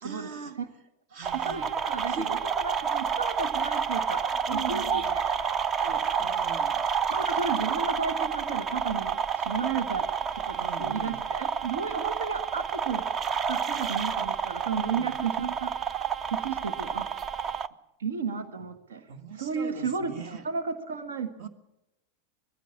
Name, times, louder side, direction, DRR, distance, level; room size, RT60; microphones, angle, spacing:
voice 1, 0.0-0.6 1.1-1.7 2.1-2.4 4.2-5.2 6.2-7.5 10.5-11.2 14.8-15.2 19.1-20.5 21.4-21.5, right 5 dB, 45° right, 11 dB, 1.9 m, -41 dB
sound 1, 1.2-17.7, right 6 dB, 25° right, 0.6 m, -29 dB
voice 2, 1.3-5.0 5.3-5.5 5.8-6.3 7.1-10.1 10.4-13.0 13.5-16.0 16.3-17.1 18.0-19.1 19.4-21.5, right 5 dB, 65° right, 9 dB, 1.5 m, -33 dB
20.5 x 15.5 x 8.7 m, 0.92 s
figure-of-eight pair, 90°, 0 cm